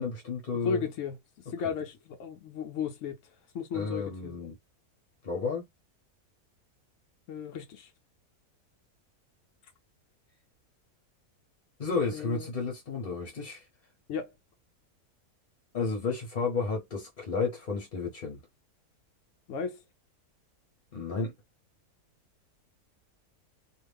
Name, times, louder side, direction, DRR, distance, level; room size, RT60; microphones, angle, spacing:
voice 1, 0.0-0.8 3.7-4.5 5.2-5.6 11.8-13.6 15.7-18.4 20.9-21.3, left 4 dB, 40° left, 0.9 m, -32 dB
voice 2, 0.5-4.5 7.3-7.9 12.1-12.5 14.1-14.3 19.5-19.8, left 6 dB, 65° left, 0.9 m, -35 dB
2.6 x 2.4 x 3.4 m
omnidirectional pair, 1.6 m